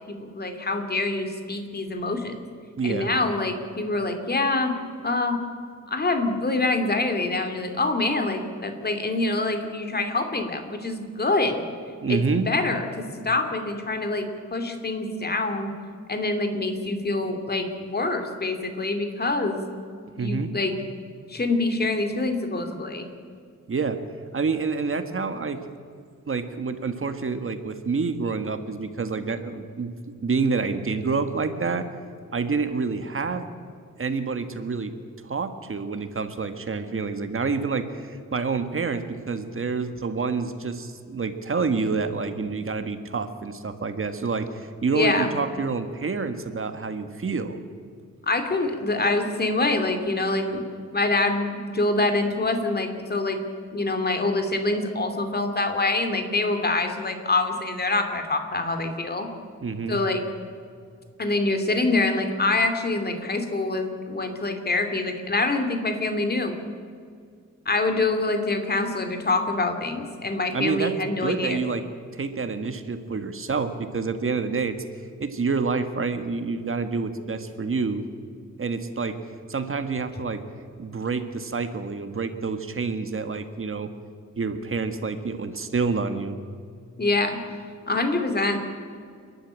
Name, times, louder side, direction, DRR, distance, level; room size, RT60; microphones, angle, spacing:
voice 1, 0.1-2.4 2.8-4.8 5.0-5.4 5.9-11.6 12.1-15.7 16.1-19.6 20.1-20.8 21.3-23.1 44.9-45.3 48.2-50.7 50.9-53.4 53.7-59.3 59.9-60.2 61.2-66.5 67.7-71.6 87.0-87.4 87.9-88.6, left 2 dB, 35° left, 6 dB, 2.6 m, -25 dB
voice 2, 2.8-3.1 12.0-12.5 20.2-20.5 23.7-24.0 24.3-25.6 26.3-29.9 30.2-31.9 32.3-33.5 34.0-34.9 35.2-47.6 59.6-60.0 70.5-70.9 71.2-71.8 72.1-74.8 75.2-78.0 78.6-79.2 79.5-80.4 80.8-83.9 84.4-86.4, right 4 dB, 45° right, 8 dB, 1.6 m, -28 dB
28.5 x 11.5 x 8.9 m, 2.2 s
wide cardioid pair, 120°, 30 cm